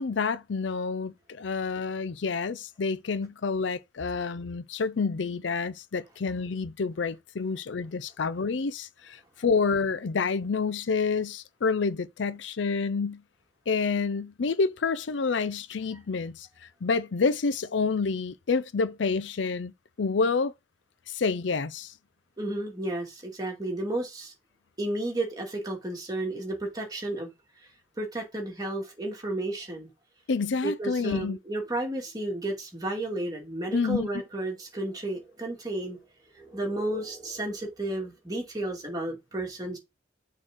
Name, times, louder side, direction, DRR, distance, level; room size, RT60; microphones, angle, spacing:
voice 1, 0.0-13.2 13.7-19.7 20.0-20.5 21.1-21.9 30.3-31.4 33.7-34.1, left 4 dB, 75° left, 0.5 m, -28 dB
voice 2, 22.4-24.3 24.8-27.3 28.0-29.9 30.6-36.0 36.3-39.8, right 1 dB, 20° right, 2.4 m, -32 dB
6.4 x 3.9 x 6.1 m
head